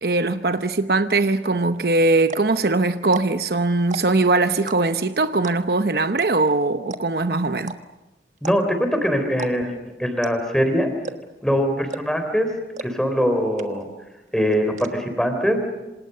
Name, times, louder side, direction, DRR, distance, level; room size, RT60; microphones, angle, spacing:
voice 1, 0.0-7.8, right 3 dB, 60° right, 0.9 m, -21 dB
sound 1, 1.7-1.8 2.2-2.5 3.0-3.5 3.8-4.2 4.7-5.1 5.4-5.8 6.2-6.3 6.5-6.6 6.9-7.2 7.6-7.8 8.4-8.8 9.3-9.8 10.2-10.5 11.0-11.4 11.9-12.2 12.8-12.9 13.2-13.3 13.6-14.0 14.3-14.9, right 3 dB, 40° right, 1.4 m, -34 dB
voice 2, 8.4-10.9 11.4-12.5 12.8-13.9 14.3-15.6, equal, 5° left, 3.7 m, -22 dB
27.5 x 27.0 x 6.7 m
head